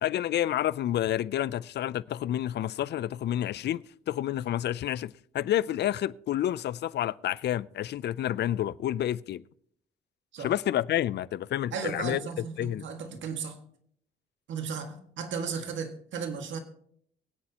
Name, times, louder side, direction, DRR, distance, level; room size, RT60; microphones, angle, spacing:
voice 1, 0.0-9.4 10.4-12.2 12.6-12.9, left 12 dB, 60° left, 0.4 m, -29 dB
voice 2, 11.7-13.6 14.5-16.6, right 6 dB, 70° right, 1.9 m, -35 dB
23.5 x 8.5 x 2.9 m
cardioid pair, 90°, 20 cm